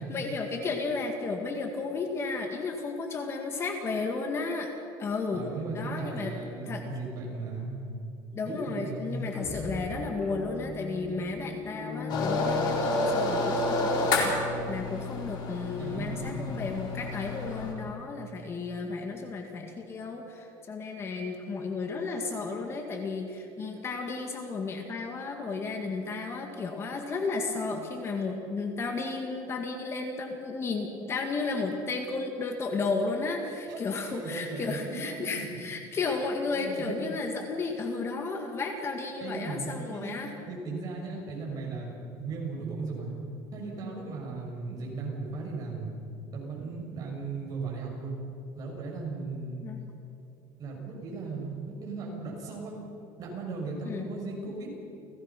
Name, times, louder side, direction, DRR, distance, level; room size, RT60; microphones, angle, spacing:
voice 1, 0.1-4.7 5.0-5.4 5.7-6.3 6.7-6.8 8.3-40.3 49.6-49.8 53.9-54.1, left 4 dB, 25° left, 4 dB, 1.9 m, -33 dB
voice 2, 5.3-7.8 8.5-9.2 15.8-16.8 33.7-33.8 34.1-35.4 36.5-37.0 39.2-40.2 40.5-43.1 43.5-45.9 46.3-48.2 48.6-49.6 50.6-52.7 53.2-54.7, right 3 dB, 40° right, -1 dB, 6.6 m, -37 dB
sound 1, 9.1-13.3, left 2 dB, 10° left, 3.9 m, -38 dB
sound 2, 12.1-17.7, left 2 dB, 50° left, 4.4 m, -29 dB
29.5 x 17.5 x 5.9 m, 2.6 s
cardioid pair, 155°, 9 cm